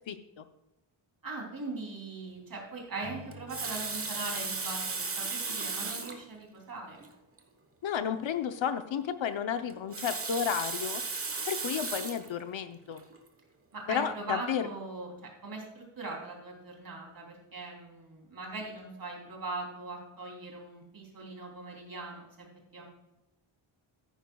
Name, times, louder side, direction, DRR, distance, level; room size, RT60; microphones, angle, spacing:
voice 1, 0.1-0.4 7.8-11.0 11.5-13.0 13.9-14.7, left 8 dB, 65° left, 9 dB, 0.8 m, -32 dB
voice 2, 1.2-7.0 13.7-15.1 15.4-22.5 22.7-22.8, right 3 dB, 45° right, -1 dB, 3.1 m, -40 dB
Strum, 3.0-7.4, left 1 dB, 45° left, 3.8 m, -54 dB
Water tap faucet, 3.3-6.2 7.0-7.1 7.4-7.5 9.7-12.3 13.0-13.2, right 4 dB, 25° right, 1.1 m, -35 dB
14.5 x 9.6 x 2.3 m, 0.96 s
wide cardioid pair, 165°, 49 cm